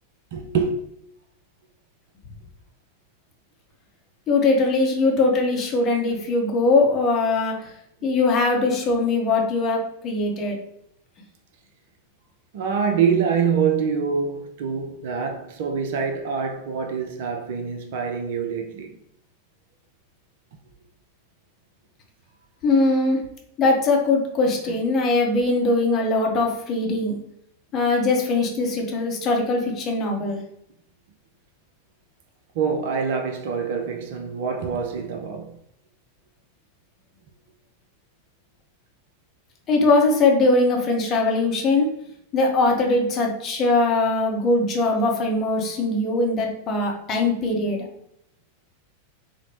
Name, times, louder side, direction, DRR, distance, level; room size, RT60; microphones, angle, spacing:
voice 1, 0.3-0.8 12.5-19.0 30.2-30.3 32.5-35.6, right 6 dB, 55° right, 0.5 m, -25 dB
voice 2, 4.3-7.7 8.0-10.6 22.6-23.2 23.6-27.2 27.7-30.4 39.7-41.9 42.3-47.8, left 3 dB, 30° left, 0.7 m, -21 dB
3.8 x 2.1 x 3.1 m
figure-of-eight pair, 90°, 0 cm